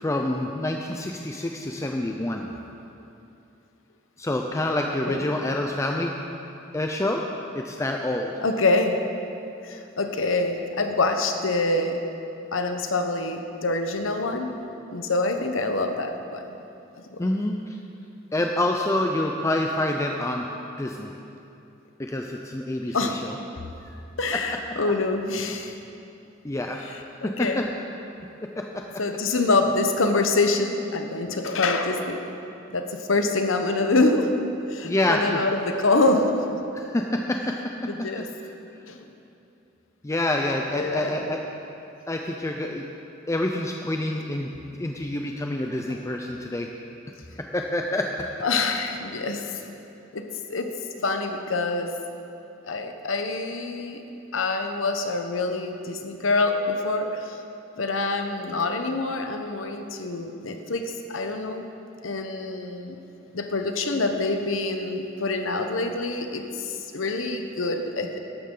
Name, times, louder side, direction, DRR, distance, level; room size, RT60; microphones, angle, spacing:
voice 1, 0.0-2.5 4.2-6.1 6.7-7.2 7.5-8.4 17.2-17.8 18.3-20.4 20.8-21.1 22.0-23.4 23.8-24.0 26.4-26.9 27.2-27.7 28.4-28.8 34.8-35.5 36.7-37.7 38.0-38.3 40.0-41.4 42.1-42.8 43.3-44.5 44.8-46.7 47.5-48.1, left 1 dB, 15° left, 2 dB, 0.5 m, -27 dB
voice 2, 8.4-9.0 9.6-12.0 12.5-14.6 14.9-16.6 17.1-17.2 22.9-23.2 23.6-23.7 24.2-25.7 26.8-26.9 27.2-27.7 29.0-32.4 32.7-34.4 34.7-36.5 37.9-38.3 38.9-39.0 40.7-41.3 45.9-46.0 48.4-49.6 50.1-52.0 52.6-54.0 54.3-57.4 57.8-61.6 62.0-63.0 63.3-68.2, left 3 dB, 90° left, 6 dB, 1.0 m, -26 dB
14.0 x 11.0 x 3.8 m, 2.8 s
head